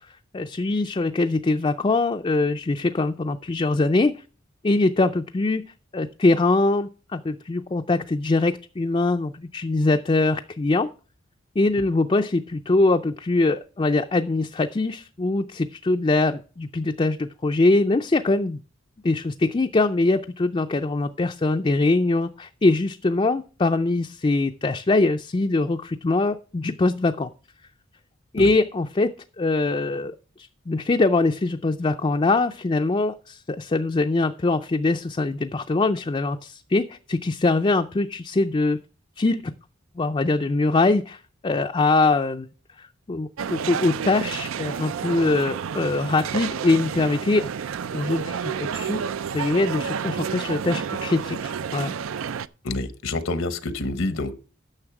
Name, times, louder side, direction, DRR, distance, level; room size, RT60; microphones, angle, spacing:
voice 1, 0.3-4.1 4.6-5.6 5.9-10.9 11.6-18.6 19.0-27.3 28.3-38.8 39.2-39.4 40.0-42.5 42.8-47.5 47.9-49.0 49.3-51.9, left 2 dB, 25° left, 5 dB, 0.4 m, -23 dB
sound 1, 43.4-52.5, right 7 dB, 80° right, 0.4 m, -30 dB
voice 2, 52.6-54.4, left 2 dB, 80° left, 12 dB, 0.9 m, -27 dB
9.8 x 6.5 x 5.9 m, 0.37 s
head